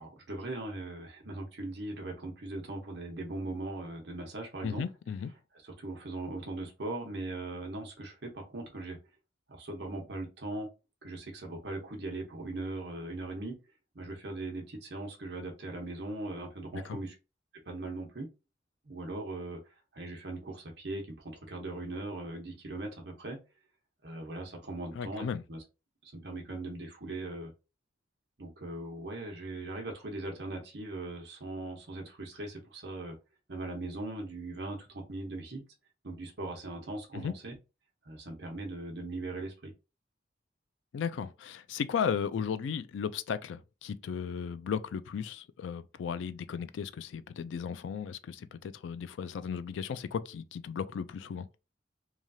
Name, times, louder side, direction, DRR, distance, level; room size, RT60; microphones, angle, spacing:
voice 1, 0.0-4.8 5.6-9.0 9.5-10.7 11.0-13.5 13.9-17.1 17.7-18.3 18.8-19.6 19.9-23.4 24.0-25.6 26.1-27.5 28.4-33.2 33.5-35.6 36.0-37.6 38.0-39.7, right 2 dB, 60° right, 0.9 m, -39 dB
voice 2, 4.6-5.3 16.7-17.0 25.0-25.4 37.1-37.3 40.9-51.5, left 7 dB, 75° left, 0.3 m, -35 dB
3.1 x 2.3 x 2.6 m
head